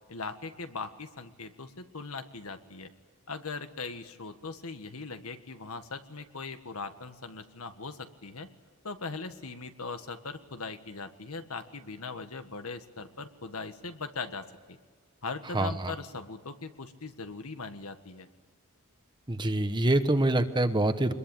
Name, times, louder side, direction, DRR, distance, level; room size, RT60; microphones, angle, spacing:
voice 1, 0.1-2.9 3.3-8.5 8.8-14.8 15.2-18.3, left 4 dB, 80° left, 8 dB, 1.7 m, -40 dB
voice 2, 15.5-15.9 19.3-21.1, right 1 dB, 20° right, 9 dB, 1.1 m, -25 dB
24.5 x 21.5 x 9.0 m, 1.5 s
head